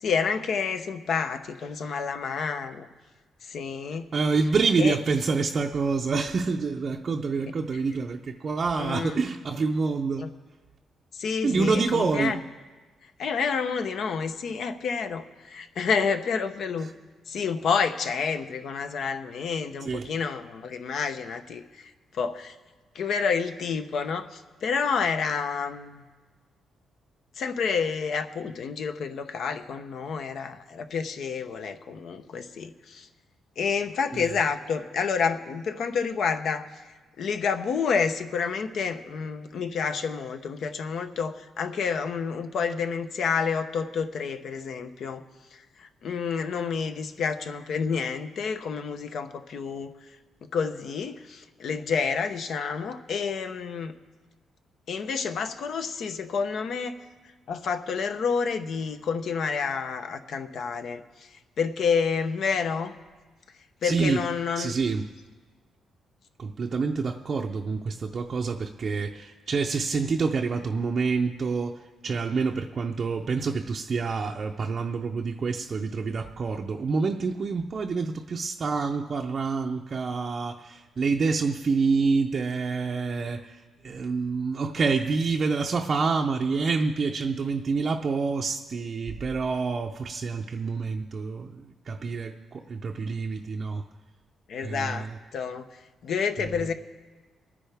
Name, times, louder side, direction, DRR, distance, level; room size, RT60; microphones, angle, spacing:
voice 1, 0.0-2.9 3.4-4.1 4.8-5.0 8.8-9.2 10.2-10.3 11.1-12.4 13.2-17.0 17.3-22.6 22.9-26.0 27.4-33.1 33.6-36.7 37.2-45.2 45.5-49.9 50.5-54.0 54.9-57.0 57.5-62.9 63.8-64.7 94.5-95.6 96.0-96.7, left 5 dB, 60° left, 0.8 m, -29 dB
voice 2, 4.1-10.3 11.4-12.4 19.8-20.1 34.1-34.3 63.8-64.2 64.6-65.1 66.4-93.9 94.6-95.2 96.4-96.6, right 4 dB, 40° right, 0.5 m, -27 dB
23.5 x 10.0 x 3.5 m
cardioid pair, 130°, 0 cm